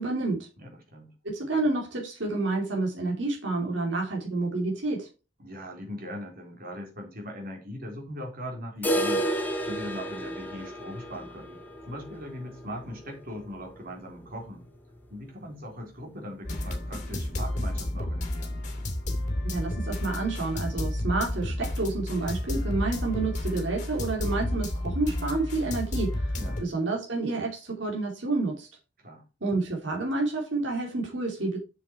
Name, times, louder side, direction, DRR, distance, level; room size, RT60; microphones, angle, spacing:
voice 1, 0.0-0.5 1.2-5.1 19.4-28.7 29.4-31.6, right 3 dB, 80° right, 2.7 m, -29 dB
voice 2, 0.6-1.1 5.4-9.3 9.7-14.6 15.1-18.6 26.4-26.6 29.0-29.3, equal, 55° right, 3.7 m, -40 dB
sound 1, 8.8-14.6 14.9-15.0 15.4-15.5 16.0-16.1 17.0-17.1, right 1 dB, 10° left, 1.9 m, -32 dB
sound 2, 16.4-26.6, left 1 dB, 40° left, 2.6 m, -31 dB
7.5 x 6.9 x 4.5 m
head